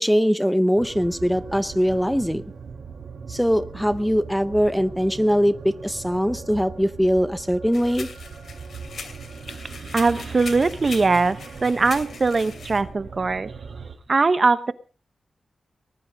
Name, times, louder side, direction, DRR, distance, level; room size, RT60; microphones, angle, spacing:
voice 1, 0.0-2.4 3.3-8.1, equal, ahead, 12 dB, 0.7 m, -21 dB
sound 1, 0.8-14.0, right 5 dB, 85° right, 3.5 m, -39 dB
sound 2, 7.7-12.8, left 5 dB, 75° left, 2.7 m, -40 dB
voice 2, 9.9-13.5 14.1-14.7, right 3 dB, 35° right, 13 dB, 0.8 m, -21 dB
20.0 x 11.5 x 5.2 m, 0.37 s
wide cardioid pair, 170°, 0 cm